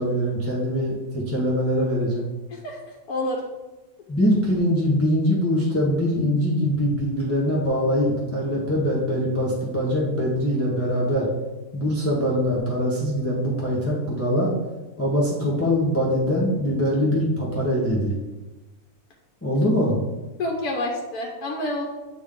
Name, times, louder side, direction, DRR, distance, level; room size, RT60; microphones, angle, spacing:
voice 1, 0.0-2.2 4.1-11.3 11.7-14.5 15.0-18.1 19.4-20.0, equal, 10° left, -5 dB, 0.8 m, -23 dB
voice 2, 3.1-3.4 20.4-21.8, left 1 dB, 85° left, 0 dB, 1.3 m, -28 dB
8.0 x 3.5 x 3.6 m, 1.1 s
omnidirectional pair, 1.6 m